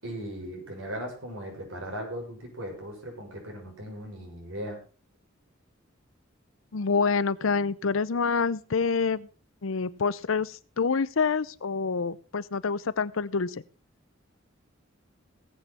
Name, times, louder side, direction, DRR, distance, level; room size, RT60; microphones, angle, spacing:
voice 1, 0.0-4.8, equal, 75° right, 1 dB, 6.7 m, -38 dB
voice 2, 6.7-9.3 9.6-13.6, left 5 dB, 80° left, 18 dB, 0.7 m, -27 dB
19.0 x 8.4 x 4.2 m, 0.36 s
head